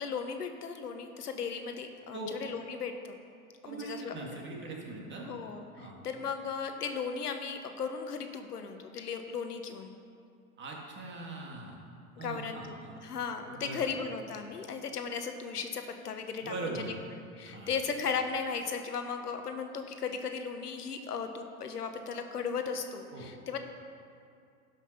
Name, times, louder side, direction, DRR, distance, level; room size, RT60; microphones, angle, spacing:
voice 1, 0.0-3.2 3.6-4.2 5.2-9.9 12.2-16.9 17.4-23.6, left 5 dB, 90° left, 6 dB, 1.1 m, -36 dB
voice 2, 3.6-5.3 5.8-5.9 10.6-11.8 12.2-13.0 13.5-13.8 16.4-16.9 17.5-17.7 23.1-23.3, right 3 dB, 25° right, -1 dB, 2.1 m, -41 dB
11.5 x 5.8 x 5.8 m, 2.4 s
hypercardioid pair, 110°, 45 cm